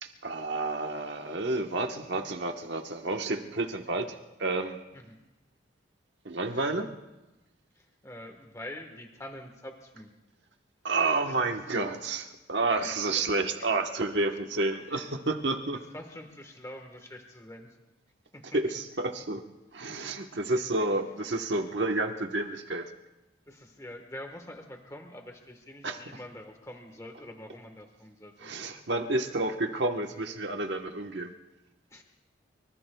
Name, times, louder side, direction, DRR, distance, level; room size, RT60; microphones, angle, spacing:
voice 1, 0.0-4.8 6.2-6.9 10.8-15.8 18.5-19.4 19.7-22.9 25.8-26.0 28.4-31.3, right 2 dB, 65° right, 4 dB, 1.2 m, -30 dB
voice 2, 7.8-10.1 11.3-11.4 11.7-11.9 12.6-13.3 13.6-13.7 14.9-15.1 15.7-17.8 18.3-18.8 20.8-20.9 23.5-28.5 31.9-32.0, left 1 dB, 15° left, 4 dB, 1.3 m, -45 dB
24.5 x 24.5 x 2.3 m, 1.0 s
head